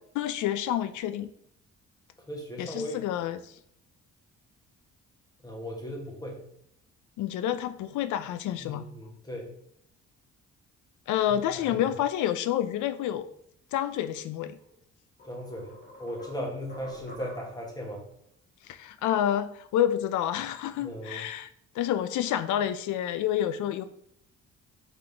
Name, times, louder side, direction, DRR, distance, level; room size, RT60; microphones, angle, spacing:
voice 1, 0.1-1.3 2.6-3.5 7.2-8.9 11.1-13.3 13.7-14.6 18.7-21.5 21.7-23.8, left 11 dB, 75° left, 12 dB, 0.5 m, -28 dB
voice 2, 2.2-3.0 5.4-6.4 8.6-9.5 11.3-11.8 15.2-18.0 20.8-21.2, equal, 15° left, -1 dB, 1.3 m, -38 dB
sound 1, 14.6-14.7 15.2-17.8, left 2 dB, 35° left, 1.5 m, -46 dB
3.7 x 3.6 x 3.3 m, 0.71 s
cardioid pair, 90°, 30 cm